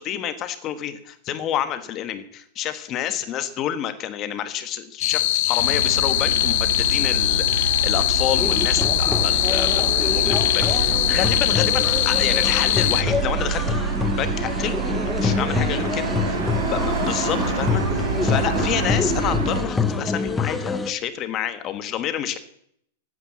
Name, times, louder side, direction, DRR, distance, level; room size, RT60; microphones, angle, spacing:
voice 1, 0.0-13.8 14.2-16.4 16.6-22.4, left 10 dB, 35° left, 10 dB, 1.4 m, -29 dB
sound 1, 5.0-13.0, left 15 dB, 65° left, 0.6 m, -21 dB
sound 2, 5.6-19.6, right 5 dB, 80° right, 4.1 m, -27 dB
sound 3, 8.3-20.9, left 4 dB, 10° left, 1.0 m, -26 dB
12.5 x 9.2 x 7.4 m, 0.70 s
supercardioid pair, 145°, 0 cm